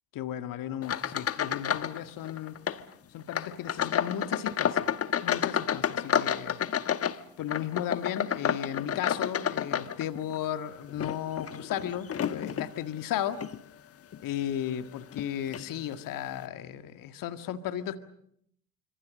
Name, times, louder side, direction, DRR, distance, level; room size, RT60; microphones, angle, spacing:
voice 1, 0.2-2.6 3.1-4.9 5.2-6.6 7.4-13.4 14.2-18.0, left 10 dB, 50° left, 9 dB, 1.9 m, -35 dB
sound 1, 0.8-2.0 2.2-2.8 3.3-10.4 10.9-12.7 13.3-13.6 14.1-14.2 15.1-15.2 15.5-15.7, left 8 dB, 35° left, 1.3 m, -30 dB
27.0 x 26.0 x 6.4 m, 0.70 s
hypercardioid pair, 65°, 43 cm